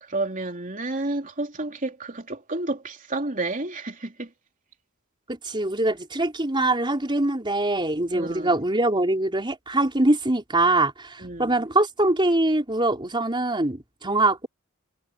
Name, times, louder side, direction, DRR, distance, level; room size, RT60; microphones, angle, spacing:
voice 1, 0.1-4.3 8.1-8.6 11.2-11.6, right 2 dB, 40° right, 3.3 m, -30 dB
voice 2, 5.3-14.5, right 2 dB, 20° right, 4.4 m, -23 dB
head